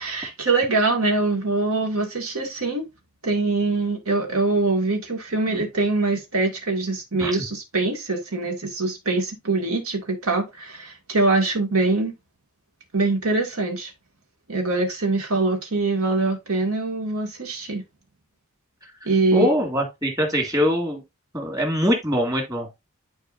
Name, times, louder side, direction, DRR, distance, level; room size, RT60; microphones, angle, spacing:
voice 1, 0.0-2.9 3.2-12.1 12.9-13.9 14.5-17.8 19.1-19.5, right 3 dB, 75° right, 2.0 m, -23 dB
voice 2, 19.3-21.0 21.3-22.7, equal, 15° right, 2.1 m, -23 dB
10.5 x 4.7 x 2.5 m
head